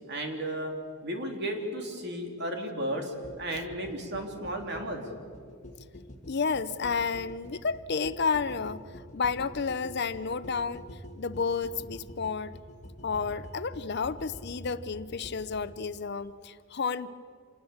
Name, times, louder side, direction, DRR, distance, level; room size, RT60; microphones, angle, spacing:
voice 1, 0.1-0.7 1.0-5.0, right 1 dB, 55° right, 3 dB, 3.3 m, -34 dB
sound 1, 3.2-15.7, left 1 dB, 35° left, 1.7 m, -46 dB
voice 2, 6.3-8.8 9.1-10.8 11.2-12.6 13.0-17.1, left 5 dB, 50° left, 14 dB, 0.6 m, -31 dB
27.0 x 19.5 x 7.2 m, 2.2 s
head